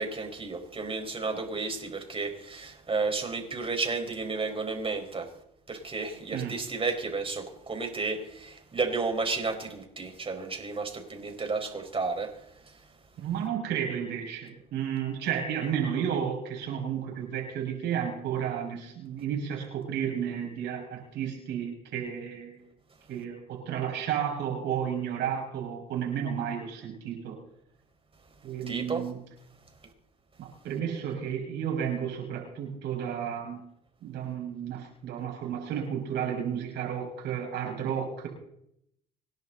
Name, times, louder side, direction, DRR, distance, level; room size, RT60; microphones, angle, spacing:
voice 1, 0.0-5.3 5.7-12.3 28.7-29.0, right 4 dB, 30° right, 4 dB, 4.9 m, -32 dB
voice 2, 13.2-22.6 23.1-27.4 28.4-29.2 30.4-33.6 34.0-38.3, right 8 dB, 70° right, 1 dB, 6.2 m, -32 dB
26.5 x 10.5 x 4.0 m, 0.74 s
hypercardioid pair, 65°, 18 cm